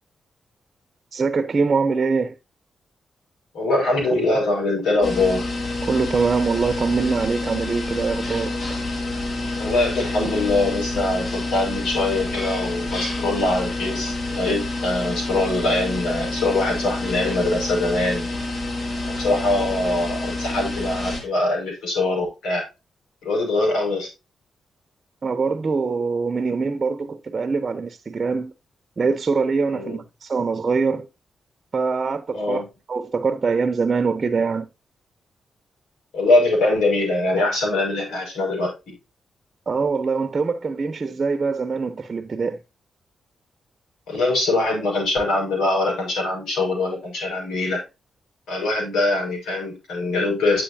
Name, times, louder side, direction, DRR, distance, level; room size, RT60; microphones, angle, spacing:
voice 1, 1.1-2.3 5.8-8.8 25.2-28.5 29.0-31.1 31.7-32.6 32.9-34.7 39.7-42.6, right 4 dB, 45° right, 0.9 m, -23 dB
voice 2, 3.5-5.4 9.6-18.3 19.1-22.6 23.2-24.1 29.7-30.0 32.3-32.6 36.1-38.9 44.1-47.8 48.5-50.6, left 2 dB, 85° left, 6.2 m, -23 dB
sound 1, 5.0-21.2, left 2 dB, 50° left, 3.9 m, -28 dB
10.0 x 7.9 x 2.8 m
cardioid pair, 65°, 0 cm